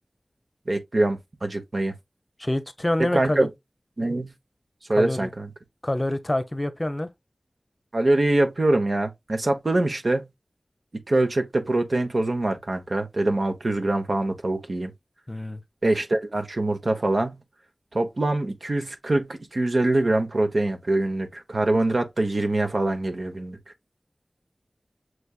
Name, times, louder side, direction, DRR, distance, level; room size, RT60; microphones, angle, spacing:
voice 1, 0.7-1.9 3.0-3.5 4.0-4.3 4.9-5.5 7.9-10.3 11.1-14.9 15.8-17.4 17.9-23.6, right 2 dB, 65° right, 1.1 m, -24 dB
voice 2, 2.4-3.5 5.0-5.3 5.8-7.1 15.3-15.6, left 1 dB, 30° left, 0.7 m, -26 dB
6.3 x 3.4 x 2.4 m
wide cardioid pair, 55°, 0 cm